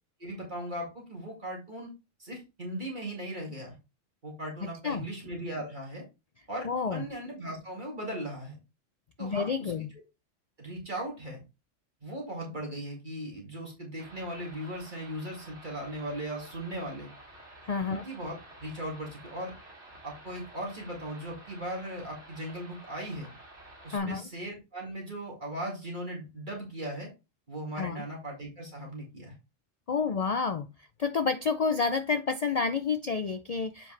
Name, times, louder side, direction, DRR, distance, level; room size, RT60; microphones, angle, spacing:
voice 1, 0.2-1.9 2.2-3.8 4.2-6.0 6.5-8.6 9.2-9.7 10.6-11.4 12.0-17.1 17.8-19.5 20.0-23.3 23.8-27.1 27.5-29.3, right 1 dB, 40° right, 2.3 m, -38 dB
voice 2, 4.6-5.1 6.6-7.1 9.2-9.9 17.6-18.0 23.9-24.3 27.8-28.1 29.9-30.7 31.0-33.9, left 5 dB, 75° left, 0.3 m, -29 dB
sound 1, 14.0-24.0, right 1 dB, 60° right, 2.7 m, -51 dB
7.5 x 5.0 x 3.2 m
omnidirectional pair, 1.3 m